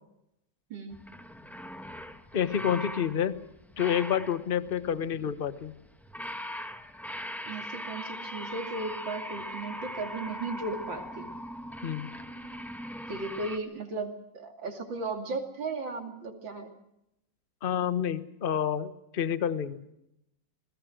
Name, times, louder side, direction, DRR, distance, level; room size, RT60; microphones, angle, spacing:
sound 1, 0.9-13.6, equal, ahead, 1.0 m, -41 dB
voice 1, 2.3-3.4 3.8-5.7 11.8-12.1 17.6-19.8, left 8 dB, 35° left, 13 dB, 1.0 m, -29 dB
voice 2, 7.5-11.3 13.1-16.7, right 3 dB, 70° right, 4 dB, 3.3 m, -36 dB
27.0 x 20.5 x 6.3 m, 0.83 s
omnidirectional pair, 2.1 m